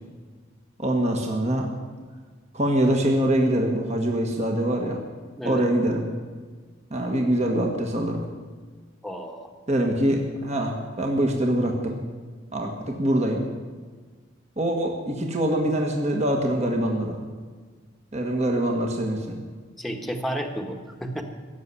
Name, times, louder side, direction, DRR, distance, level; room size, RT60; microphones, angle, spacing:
voice 1, 0.8-1.7 2.5-5.0 5.4-6.0 6.9-8.2 9.7-11.9 12.5-13.5 14.6-17.2 18.1-19.4, right 1 dB, 35° right, 1 dB, 1.6 m, -24 dB
voice 2, 9.0-9.5 19.8-21.2, equal, ahead, 3 dB, 1.3 m, -31 dB
17.0 x 7.3 x 9.7 m, 1.5 s
head